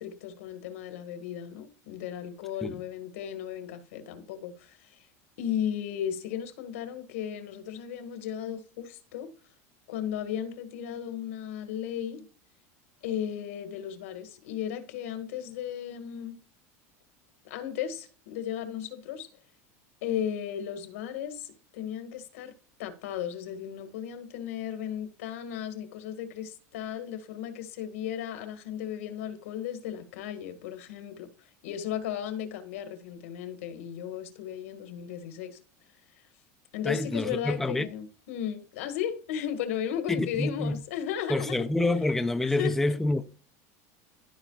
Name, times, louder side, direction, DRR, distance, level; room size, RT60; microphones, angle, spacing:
voice 1, 0.0-5.0 5.4-9.3 9.9-12.2 13.0-16.4 17.4-19.3 20.0-22.5 22.8-31.3 31.6-35.6 36.7-41.7 42.4-42.9, left 9 dB, 90° left, 1.7 m, -35 dB
voice 2, 36.8-37.9 40.2-40.8 41.3-43.2, left 2 dB, 5° left, 0.4 m, -27 dB
13.5 x 5.5 x 2.4 m
supercardioid pair, 155°, 7 cm